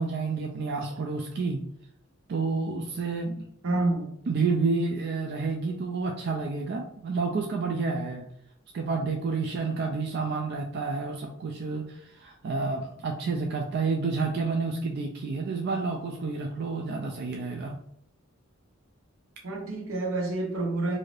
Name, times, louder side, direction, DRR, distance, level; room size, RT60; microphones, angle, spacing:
voice 1, 0.0-1.6 2.3-3.5 4.3-8.3 8.7-17.8, right 4 dB, 50° right, 0.3 m, -29 dB
voice 2, 3.6-4.2 19.4-21.0, right 2 dB, 80° right, 0.8 m, -28 dB
2.6 x 2.4 x 3.2 m
head